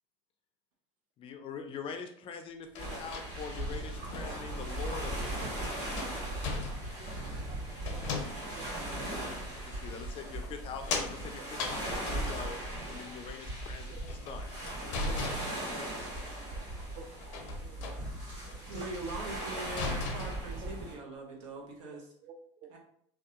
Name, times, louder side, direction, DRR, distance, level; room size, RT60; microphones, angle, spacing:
voice 1, 1.2-5.9 9.5-10.8 11.1-12.6 12.9-14.5 14.8-15.1, left 6 dB, 35° left, 6 dB, 0.4 m, -43 dB
sound 1, 2.7-4.4 5.2-5.3 5.8-7.1 7.8-8.7 9.3-9.4 10.4-12.7 13.9-16.0 17.2-18.1 18.4-18.7 19.1-19.2 19.6-20.7, left 3 dB, 85° left, 0.5 m, -38 dB
sound 2, 2.8-20.9, right 1 dB, 50° right, 1.5 m, -38 dB
voice 2, 6.3-7.6 7.9-8.2 8.6-9.0 15.1-15.2 15.9-16.6 17.0-17.4 17.6-18.0 18.7-19.1 22.2-22.7, right 4 dB, 30° right, 6 dB, 0.4 m, -51 dB
voice 3, 18.7-22.1 22.7-22.8, right 2 dB, 80° right, 0 dB, 0.7 m, -42 dB
2.6 x 2.2 x 2.4 m, 0.66 s
supercardioid pair, 110°, 16 cm